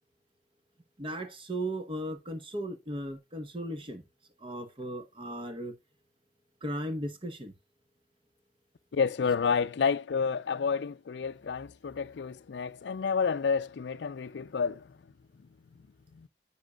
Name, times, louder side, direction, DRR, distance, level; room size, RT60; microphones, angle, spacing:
voice 1, 1.0-4.0 4.4-5.7 6.6-7.5, right 1 dB, 30° right, 0.9 m, -36 dB
voice 2, 8.9-14.8, left 5 dB, 80° left, 0.4 m, -29 dB
10.5 x 8.2 x 2.2 m
head